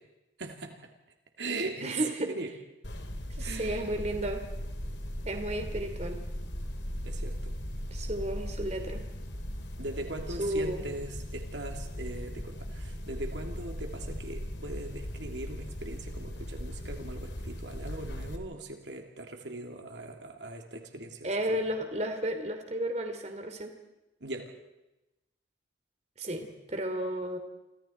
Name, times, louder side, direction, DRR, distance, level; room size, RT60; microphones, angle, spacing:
voice 1, 0.4-0.7 1.4-2.5 3.4-3.9 7.0-7.5 9.8-21.6 24.2-24.5, right 2 dB, 70° right, 3 dB, 2.8 m, -40 dB
voice 2, 1.8-2.3 3.4-4.4 5.2-6.2 7.9-9.0 10.4-10.8 21.2-23.7 26.2-27.4, right 1 dB, 35° right, 5 dB, 3.1 m, -33 dB
sound 1, 2.8-18.4, equal, 70° left, 2.7 m, -38 dB
30.0 x 25.5 x 4.6 m, 0.98 s
head